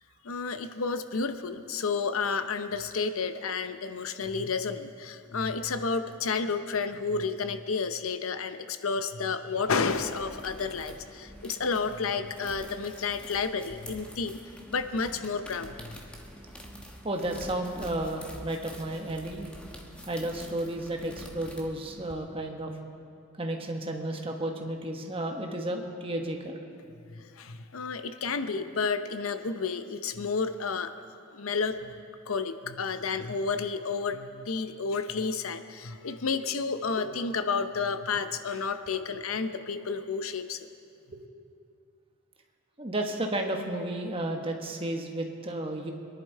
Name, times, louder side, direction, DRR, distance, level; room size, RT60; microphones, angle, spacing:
voice 1, 0.2-14.4 14.7-16.0 27.1-30.9 31.3-31.9 32.3-40.7, left 5 dB, 90° left, 10 dB, 0.7 m, -31 dB
sound 1, 9.5-22.1, equal, 5° left, 1.2 m, -46 dB
voice 2, 17.0-19.5 20.1-22.7 23.4-26.6 41.1-41.2 42.8-45.9, right 1 dB, 25° right, 3 dB, 1.3 m, -32 dB
23.5 x 11.0 x 4.5 m, 2.4 s
head